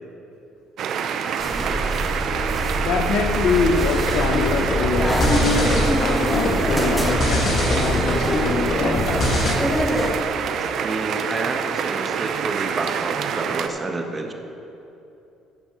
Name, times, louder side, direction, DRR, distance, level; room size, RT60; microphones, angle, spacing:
sound 1, 0.8-13.7, right 7 dB, 60° right, 0.6 m, -27 dB
sound 2, 1.4-10.1, equal, 5° left, 2.5 m, -25 dB
voice 1, 2.8-9.3, left 5 dB, 65° left, 6 dB, 0.8 m, -25 dB
sound 3, 3.9-9.6, left 2 dB, 50° left, 1.6 m, -25 dB
voice 2, 10.6-14.3, right 3 dB, 30° right, 4 dB, 1.3 m, -29 dB
13.5 x 5.5 x 6.1 m, 2.9 s
supercardioid pair, 65°, 0 cm